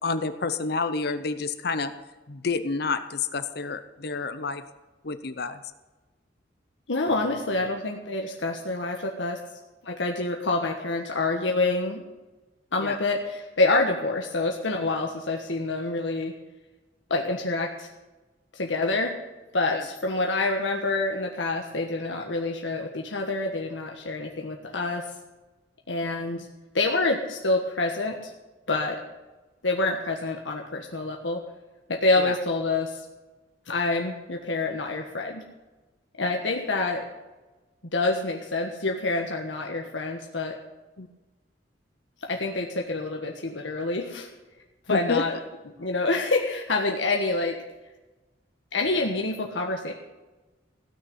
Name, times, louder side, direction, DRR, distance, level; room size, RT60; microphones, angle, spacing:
voice 1, 0.0-1.9 2.3-4.6 5.0-5.6 12.8-13.0 19.7-19.8 26.0-26.4 32.2-32.3 41.0-41.1 44.9-45.2, left 4 dB, 60° left, 10 dB, 0.8 m, -29 dB
voice 2, 6.9-9.4 9.8-12.0 12.7-16.3 17.1-17.9 18.5-19.1 19.5-25.0 25.9-26.5 26.7-28.3 28.7-29.0 29.6-31.4 31.9-33.0 33.7-35.4 36.2-37.1 37.9-40.6 42.2-44.3 44.9-45.3 45.8-47.6 48.7-49.9, left 2 dB, 85° left, 1 dB, 1.5 m, -27 dB
16.5 x 6.6 x 9.6 m, 1.1 s
head